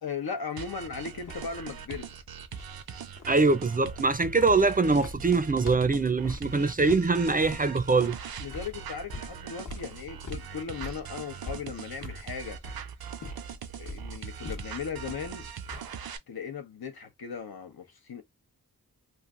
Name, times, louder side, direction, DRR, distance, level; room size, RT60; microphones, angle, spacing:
voice 1, 0.0-2.1 8.4-12.6 13.8-15.5 16.3-18.2, left 6 dB, 85° left, 0.9 m, -37 dB
sound 1, 0.6-16.2, right 8 dB, 80° right, 0.5 m, -41 dB
sound 2, 1.2-16.1, left 2 dB, 60° left, 1.0 m, -45 dB
voice 2, 3.3-8.2, right 3 dB, 25° right, 0.4 m, -23 dB
3.2 x 2.5 x 2.5 m
cardioid pair, 50°, 36 cm